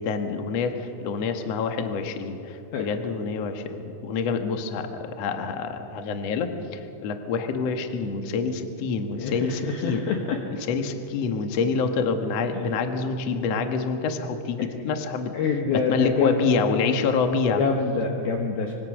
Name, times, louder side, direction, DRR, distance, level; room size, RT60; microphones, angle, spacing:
voice 1, 0.0-10.2 10.6-15.3 15.7-17.6, left 5 dB, 85° left, 5 dB, 1.4 m, -27 dB
voice 2, 9.2-10.4 15.3-16.4 17.6-18.7, left 5 dB, 65° left, 2 dB, 2.8 m, -26 dB
25.5 x 24.5 x 6.2 m, 2.9 s
omnidirectional pair, 5.6 m